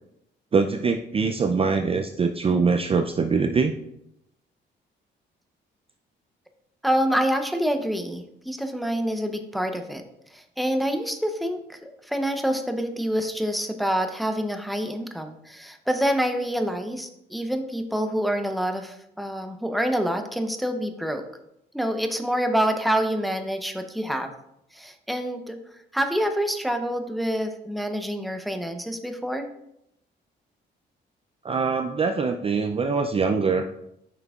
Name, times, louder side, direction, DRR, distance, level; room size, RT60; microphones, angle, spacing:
voice 1, 0.5-3.8 31.4-33.7, right 4 dB, 30° right, 6 dB, 0.4 m, -23 dB
voice 2, 6.8-10.0 10.3-21.2 21.7-24.3 24.7-25.6 25.9-29.5, equal, ahead, 6 dB, 0.7 m, -27 dB
9.1 x 5.8 x 2.4 m, 0.81 s
cardioid pair, 90°, 20 cm